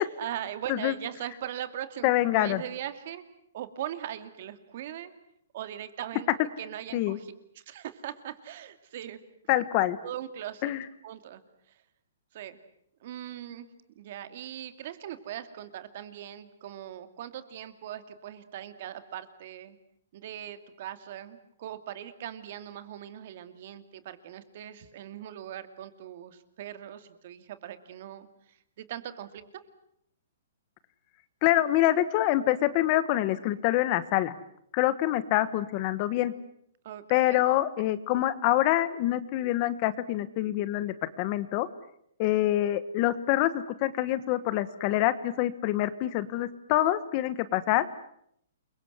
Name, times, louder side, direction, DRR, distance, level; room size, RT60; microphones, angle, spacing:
voice 1, 0.0-3.2 3.5-5.1 5.5-6.3 6.6-9.2 10.0-10.7 11.0-11.4 12.3-12.6 13.0-13.7 14.0-19.8 20.1-28.3 28.8-29.4 36.8-37.4, right 11 dB, 45° right, 11 dB, 2.5 m, -40 dB
voice 2, 2.0-2.6 6.9-7.2 9.5-10.0 10.6-10.9 31.4-34.4 34.7-36.3 37.1-41.7 42.2-47.9, left 14 dB, 30° left, 15 dB, 1.2 m, -26 dB
29.0 x 23.5 x 8.0 m, 0.70 s
hypercardioid pair, 170°, 0 cm